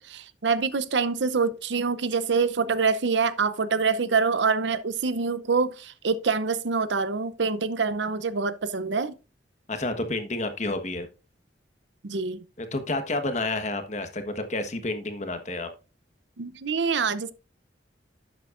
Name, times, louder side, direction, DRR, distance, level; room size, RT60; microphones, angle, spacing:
voice 1, 0.0-9.1 12.0-12.4 16.4-17.3, right 5 dB, 70° right, 0.7 m, -25 dB
voice 2, 9.7-11.1 12.6-15.7, left 2 dB, 40° left, 1.3 m, -30 dB
11.5 x 7.9 x 2.5 m
head